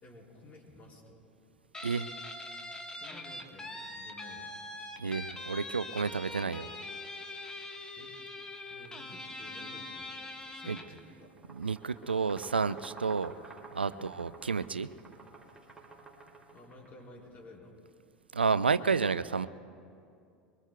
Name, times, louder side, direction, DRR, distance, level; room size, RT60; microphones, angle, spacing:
voice 1, 0.0-1.2 2.9-4.5 8.0-8.2 8.7-10.2 10.5-11.3 13.9-14.2 16.5-17.8, left 2 dB, 30° left, -2 dB, 4.4 m, -53 dB
Guitar, 1.7-11.0, left 2 dB, 15° left, 1.4 m, -43 dB
voice 2, 5.0-6.7 10.7-10.8 11.5-13.3 13.7-14.9 18.3-19.5, right 5 dB, 85° right, 15 dB, 0.3 m, -30 dB
sound 1, 11.3-17.0, right 3 dB, 10° right, 3.0 m, -51 dB
23.5 x 23.0 x 2.3 m, 2.4 s
figure-of-eight pair, 75°, 5 cm